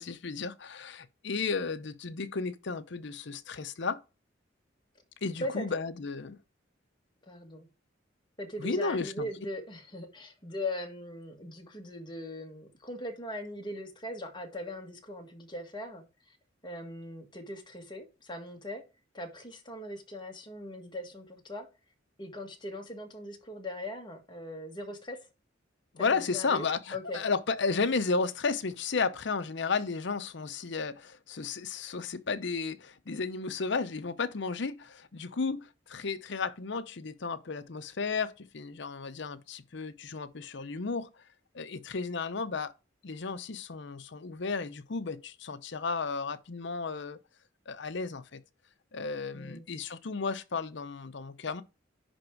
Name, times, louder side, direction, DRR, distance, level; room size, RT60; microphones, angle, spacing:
voice 1, 0.0-4.0 5.2-6.4 8.6-9.3 25.9-41.1 41.5-42.7 43.0-47.2 47.7-48.4 48.9-51.6, left 4 dB, 65° left, 0.7 m, -33 dB
voice 2, 7.3-7.7 8.4-16.0 16.6-18.8 19.1-21.7 22.2-25.2 26.1-26.6 26.9-27.2 49.3-49.6, left 1 dB, 25° left, 1.6 m, -40 dB
10.5 x 3.6 x 4.6 m
head